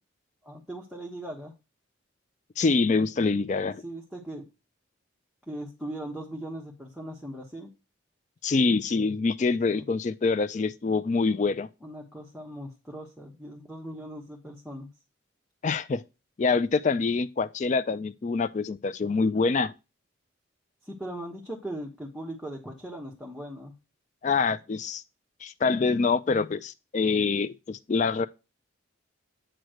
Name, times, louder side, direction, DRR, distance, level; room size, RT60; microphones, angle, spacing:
voice 1, 0.4-1.5 3.8-4.5 5.5-7.7 9.7-9.9 11.8-14.9 20.8-23.7, right 1 dB, ahead, 1.1 m, -39 dB
voice 2, 2.6-3.8 8.4-11.7 15.6-16.0 16.4-19.7 24.2-25.0 25.4-28.3, left 4 dB, 35° left, 0.3 m, -25 dB
8.9 x 3.1 x 6.3 m
head